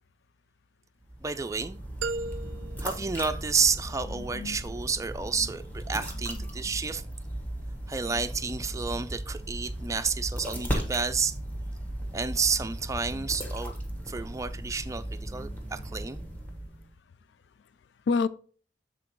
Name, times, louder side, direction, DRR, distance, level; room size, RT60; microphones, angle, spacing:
sound 1, 1.0-16.9, right 1 dB, 10° left, 1.4 m, -37 dB
voice 1, 1.2-1.8 2.8-7.0 7.9-11.3 12.1-13.7 14.0-16.3, right 5 dB, 20° right, 0.4 m, -30 dB
sound 2, 2.0-4.1, right 3 dB, 85° right, 0.4 m, -37 dB
voice 2, 2.2-2.9 4.1-4.6 18.1-18.3, left 4 dB, 70° left, 0.4 m, -30 dB
7.4 x 3.8 x 4.6 m
head